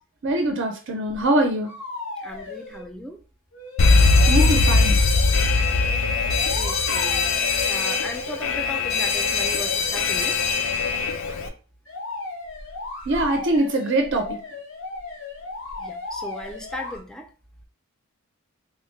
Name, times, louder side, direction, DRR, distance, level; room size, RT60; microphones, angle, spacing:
voice 1, 0.2-1.7 4.3-5.0 13.1-14.4, right 1 dB, 60° right, 4 dB, 0.5 m, -23 dB
sound 1, 1.1-1.2 1.6-2.9 3.5-4.5 5.8-8.0 11.9-17.0, left 3 dB, 85° left, 1.0 m, -35 dB
voice 2, 2.2-3.2 6.0-7.3 7.7-10.4 15.8-17.3, equal, 5° left, 3 dB, 0.4 m, -37 dB
Alarm, 3.8-11.5, left 3 dB, 65° left, 0.4 m, -20 dB
3.6 x 2.1 x 3.1 m, 0.36 s
head